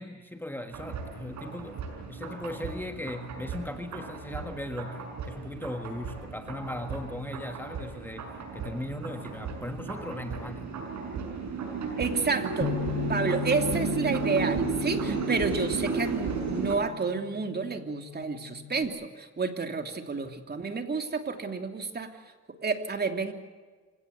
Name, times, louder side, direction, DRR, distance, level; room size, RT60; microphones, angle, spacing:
voice 1, 0.0-10.7, left 1 dB, 5° left, 6 dB, 1.6 m, -38 dB
sound 1, 0.7-16.8, right 5 dB, 70° right, 6.4 m, -34 dB
voice 2, 12.0-12.8 13.1-22.1 22.6-23.3, right 4 dB, 35° right, 5 dB, 3.0 m, -30 dB
Bass guitar, 12.6-18.9, left 10 dB, 35° left, 2.0 m, -37 dB
26.5 x 17.0 x 8.2 m, 1.4 s
cardioid pair, 90°, 30 cm